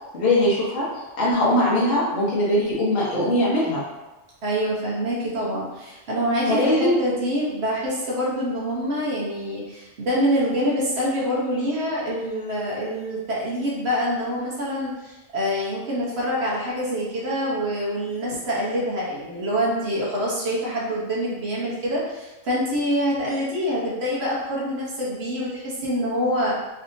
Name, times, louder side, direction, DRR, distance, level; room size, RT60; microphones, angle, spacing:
voice 1, 0.1-0.9 1.2-3.8 6.5-7.0, left 1 dB, 50° left, -6 dB, 0.9 m, -21 dB
voice 2, 4.4-26.6, equal, 55° right, -5 dB, 1.0 m, -26 dB
3.3 x 2.8 x 2.6 m, 1.1 s
omnidirectional pair, 1.3 m